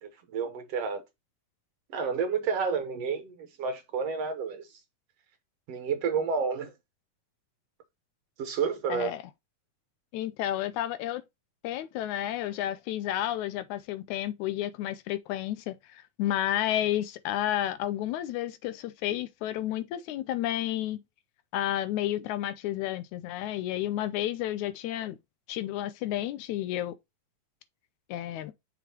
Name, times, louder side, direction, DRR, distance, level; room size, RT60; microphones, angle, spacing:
voice 1, 0.0-1.0 1.9-4.8 5.7-6.7 8.4-9.1, right 5 dB, 65° right, 1.8 m, -30 dB
voice 2, 8.9-9.2 10.1-11.2 11.6-21.0 21.5-25.2 25.5-26.9 28.1-28.5, left 13 dB, 80° left, 1.9 m, -31 dB
6.0 x 5.8 x 2.8 m
omnidirectional pair, 3.5 m